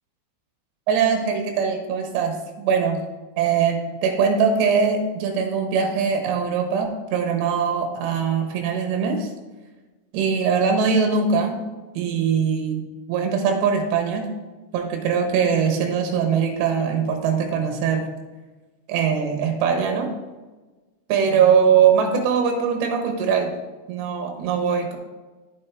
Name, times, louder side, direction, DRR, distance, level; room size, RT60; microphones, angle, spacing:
voice 1, 0.9-3.0 3.4-9.3 10.1-11.6 11.9-14.3 14.7-18.1 18.9-20.1 21.1-23.5 23.9-25.0, right 6 dB, 70° right, 4 dB, 3.1 m, -21 dB
9.2 x 7.4 x 3.5 m, 1.2 s
omnidirectional pair, 5.7 m